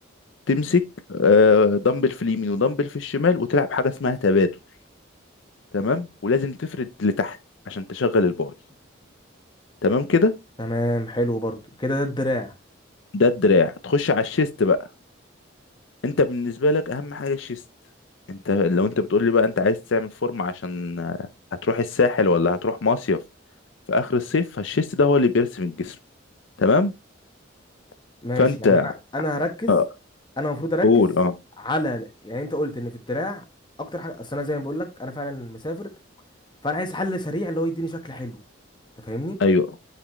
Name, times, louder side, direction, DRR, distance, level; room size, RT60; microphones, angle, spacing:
voice 1, 0.5-0.8 1.1-4.5 5.7-7.4 7.7-8.5 9.8-10.3 13.1-14.8 16.0-17.6 18.3-21.3 21.6-23.2 23.9-26.0 26.6-26.9 28.4-28.9 29.7-29.8 30.8-31.3 39.4-39.7, left 3 dB, 70° left, 0.5 m, -21 dB
voice 2, 10.6-12.5 28.2-29.8 30.4-31.0 31.6-33.4 33.8-35.9 36.6-38.4 39.0-39.4, left 1 dB, 20° left, 1.1 m, -28 dB
8.9 x 4.2 x 3.1 m
head